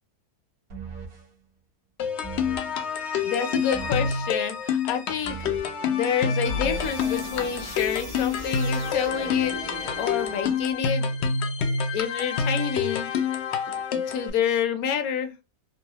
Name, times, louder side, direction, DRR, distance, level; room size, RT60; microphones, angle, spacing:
sound 1, 0.7-1.3 2.2-2.8 3.7-4.3 5.2-5.8 6.4-10.8, right 1 dB, 65° right, 1.4 m, -37 dB
sound 2, 2.0-14.3, left 6 dB, 90° left, 0.5 m, -28 dB
voice 1, 3.0-5.5 5.8-11.3 11.6-13.1 13.7-15.3, left 8 dB, 70° left, 0.9 m, -29 dB
3.9 x 2.2 x 2.8 m
omnidirectional pair, 1.8 m